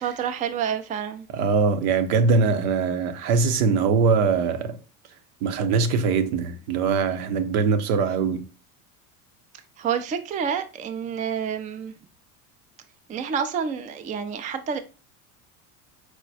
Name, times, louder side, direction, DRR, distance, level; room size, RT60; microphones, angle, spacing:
voice 1, 0.0-1.3 9.8-11.9 13.1-14.8, right 7 dB, 20° right, 0.3 m, -28 dB
voice 2, 1.3-4.8 5.4-8.4, right 5 dB, 80° right, 0.8 m, -22 dB
4.7 x 2.1 x 4.0 m
supercardioid pair, 100°, 44 cm